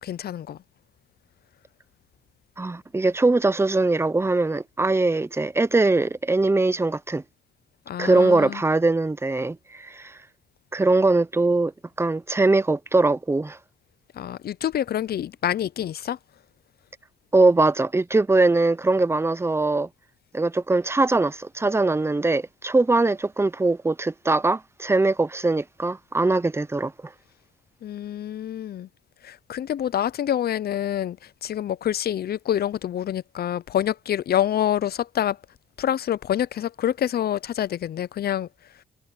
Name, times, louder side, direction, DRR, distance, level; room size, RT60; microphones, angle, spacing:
voice 1, 0.0-0.6 7.9-8.6 14.1-16.2 27.8-28.9 29.2-35.4 35.8-38.5, left 10 dB, 50° left, 0.6 m, -27 dB
voice 2, 2.6-7.2 8.0-10.2 10.7-11.7 12.0-13.6 17.3-19.9 20.3-27.1, right 2 dB, 10° right, 0.8 m, -21 dB
cardioid pair, 90°, 20 cm